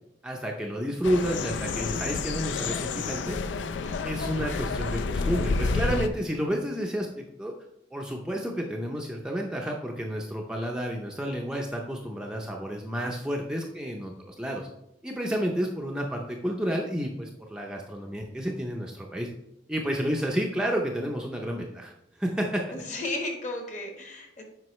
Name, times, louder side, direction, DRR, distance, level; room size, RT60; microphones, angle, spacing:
voice 1, 0.2-3.4 4.0-7.5 7.9-14.7 15.0-19.3 19.7-21.9 22.2-22.6, equal, 5° right, -1 dB, 0.5 m, -30 dB
sound 1, 1.0-6.1, left 4 dB, 85° left, 0.4 m, -29 dB
voice 2, 22.7-24.4, left 2 dB, 40° left, 2 dB, 1.3 m, -34 dB
7.6 x 5.2 x 3.1 m, 0.87 s
head